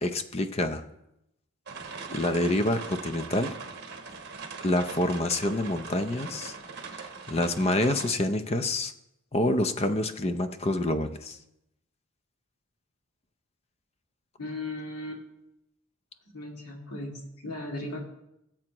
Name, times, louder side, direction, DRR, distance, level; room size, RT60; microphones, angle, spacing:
voice 1, 0.0-0.9 2.1-3.5 4.6-6.5 6.9-8.9 9.3-11.4, left 1 dB, 25° left, 9 dB, 0.6 m, -27 dB
sound 1, 1.7-8.1, right 5 dB, 50° right, 1.1 m, -41 dB
voice 2, 14.4-15.2 16.3-18.0, left 2 dB, 90° left, 0 dB, 2.3 m, -37 dB
18.0 x 7.4 x 3.0 m, 0.84 s
head